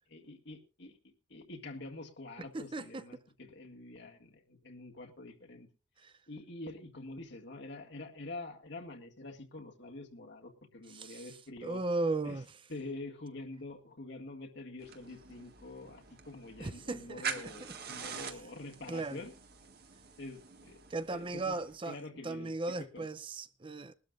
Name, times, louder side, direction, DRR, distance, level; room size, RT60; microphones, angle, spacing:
voice 1, 0.1-5.7 6.3-11.8 12.2-12.4 12.7-19.3 20.2-20.8 21.1-21.6 21.9-22.5 22.8-23.1, left 2 dB, 60° left, 1.9 m, -46 dB
voice 2, 2.5-3.0 6.0-6.1 10.9-11.2 11.6-12.5 16.6-17.2 17.6-17.7 18.9-19.3 20.9-22.0 22.2-23.9, right 2 dB, 25° right, 0.5 m, -36 dB
sound 1, 14.8-21.8, right 6 dB, 55° right, 1.7 m, -45 dB
21.5 x 12.5 x 2.5 m
head